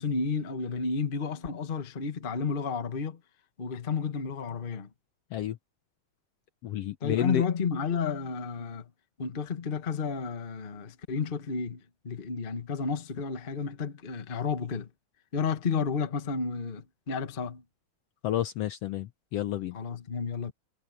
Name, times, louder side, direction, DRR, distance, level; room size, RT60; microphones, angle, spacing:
voice 1, 0.0-3.2 3.6-4.9 7.0-8.9 9.2-14.9 15.3-17.6 19.7-20.5, left 5 dB, 30° left, 1.1 m, -31 dB
voice 2, 6.6-7.4 18.2-19.7, left 12 dB, 70° left, 1.7 m, -30 dB
omnidirectional pair, 3.3 m